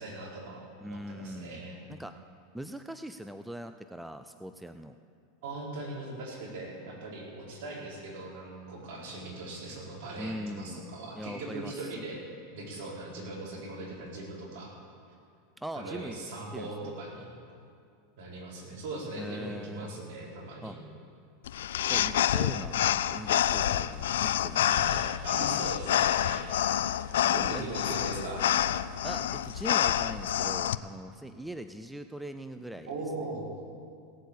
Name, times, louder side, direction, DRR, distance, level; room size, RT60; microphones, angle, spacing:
voice 1, 0.0-1.8 5.4-12.2 12.5-14.7 15.7-17.3 18.2-20.8 24.7-26.4 27.3-28.4 32.8-33.5, right 2 dB, 70° right, -3 dB, 4.4 m, -40 dB
voice 2, 0.8-1.6 1.9-2.1 2.5-5.0 10.2-10.8 11.1-11.9 15.6-16.2 16.5-16.9 19.2-19.9 20.6-20.8 21.9-22.8 23.1-25.2 27.2-28.0 29.0-32.9, equal, 5° right, 9 dB, 0.5 m, -41 dB
sound 1, 21.5-30.7, left 11 dB, 90° left, 0.4 m, -28 dB
17.0 x 8.0 x 8.3 m, 2.4 s
supercardioid pair, 135°, 0 cm